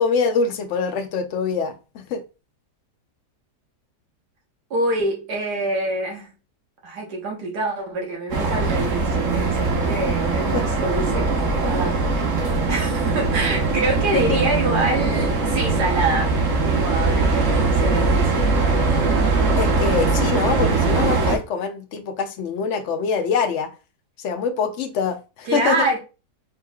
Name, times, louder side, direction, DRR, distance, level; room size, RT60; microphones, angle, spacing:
voice 1, 0.0-2.2 10.5-10.6 14.1-14.4 19.6-23.7 24.2-25.7, left 5 dB, 65° left, 0.7 m, -24 dB
voice 2, 4.7-6.3 6.8-18.4 25.5-26.0, right 2 dB, 80° right, 1.8 m, -26 dB
sound 1, 8.3-21.4, right 3 dB, 55° right, 1.2 m, -21 dB
4.4 x 3.9 x 2.3 m
omnidirectional pair, 1.7 m